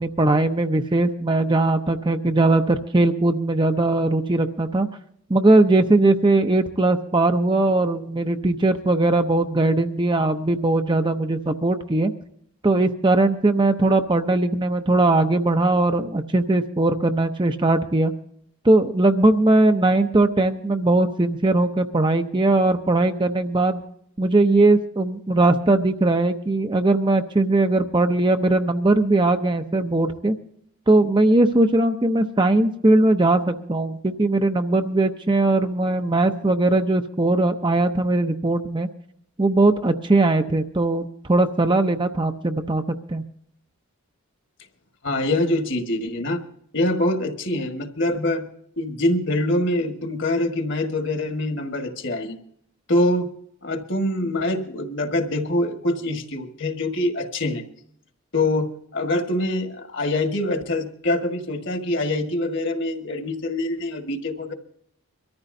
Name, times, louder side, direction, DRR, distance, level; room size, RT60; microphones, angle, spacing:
voice 1, 0.0-4.9 5.3-12.1 12.6-18.1 18.6-23.8 24.2-30.4 30.9-38.9 39.4-42.8 43.1-43.2, right 2 dB, 20° right, 7 dB, 0.6 m, -19 dB
voice 2, 45.0-46.4 46.7-48.5 48.8-52.4 52.9-53.3 53.6-57.6 58.3-64.5, left 1 dB, 55° left, 5 dB, 1.6 m, -24 dB
23.5 x 14.0 x 2.7 m, 0.68 s
head